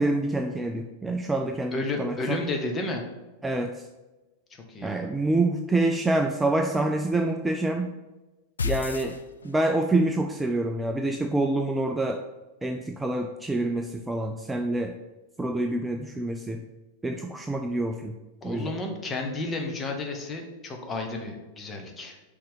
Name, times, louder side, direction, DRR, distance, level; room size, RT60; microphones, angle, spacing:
voice 1, 0.0-2.4 3.4-3.7 4.8-7.9 8.6-9.1 9.4-12.2 12.6-14.9 15.4-16.6 17.0-18.1 18.4-18.7, right 2 dB, 10° right, 3 dB, 0.4 m, -26 dB
voice 2, 1.7-3.0 4.7-5.1 18.4-22.1, left 2 dB, 20° left, 2 dB, 1.0 m, -32 dB
sound 1, 8.6-9.9, left 5 dB, 70° left, 0.4 m, -31 dB
5.5 x 3.4 x 5.3 m, 1.1 s
figure-of-eight pair, 90°, 0 cm